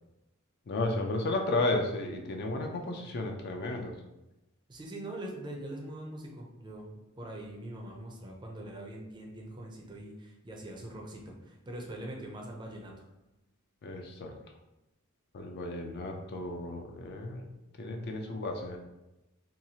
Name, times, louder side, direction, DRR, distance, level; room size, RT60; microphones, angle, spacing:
voice 1, 0.7-4.0 13.8-14.3 15.3-17.5 17.8-18.8, left 2 dB, 50° left, 3 dB, 0.4 m, -33 dB
voice 2, 4.7-6.9 7.2-12.9, right 1 dB, 20° right, 0 dB, 0.4 m, -42 dB
2.8 x 2.3 x 2.7 m, 0.97 s
head